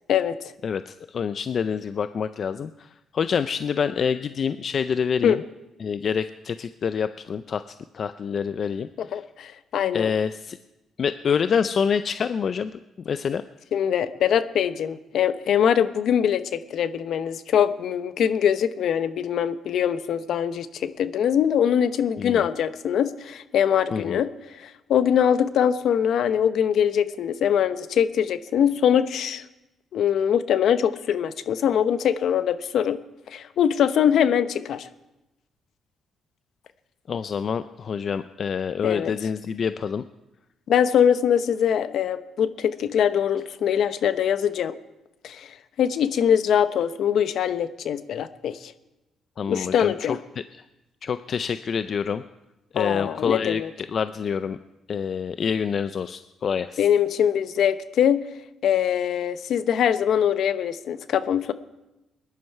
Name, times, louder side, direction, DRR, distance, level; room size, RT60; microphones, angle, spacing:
voice 1, 0.6-2.9 3.1-5.4 5.8-7.6 7.9-9.2 9.9-10.6 11.0-12.7 13.0-13.4 22.2-22.5 23.9-24.2 37.1-40.0 49.4-49.9 50.5-50.6 51.0-52.2 52.7-54.6 54.9-56.8, left 6 dB, 50° left, 12 dB, 0.5 m, -27 dB
voice 2, 9.0-10.1 13.7-24.3 24.6-29.4 29.9-33.0 33.3-34.9 38.8-39.1 40.7-44.8 45.2-45.5 45.8-48.7 49.5-50.2 52.7-53.7 56.8-58.3 58.6-61.5, left 9 dB, 70° left, 12 dB, 0.8 m, -22 dB
20.5 x 11.0 x 4.7 m, 0.99 s
cardioid pair, 90°, 0 cm